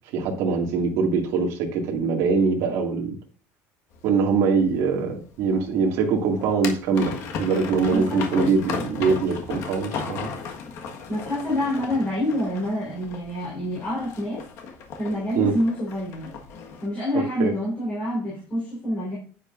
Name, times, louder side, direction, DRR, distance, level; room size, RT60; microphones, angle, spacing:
voice 1, 0.1-3.2 4.0-10.3 15.4-15.5 17.4-17.5, right 5 dB, 55° right, 0 dB, 2.2 m, -23 dB
sound 1, 3.9-16.9, left 5 dB, 50° left, 1.6 m, -36 dB
voice 2, 7.9-8.5 11.1-14.4 15.0-16.3 16.8-19.2, left 1 dB, 20° left, -6 dB, 4.2 m, -27 dB
9.8 x 8.9 x 2.6 m, 0.41 s
cardioid pair, 180°, 6 cm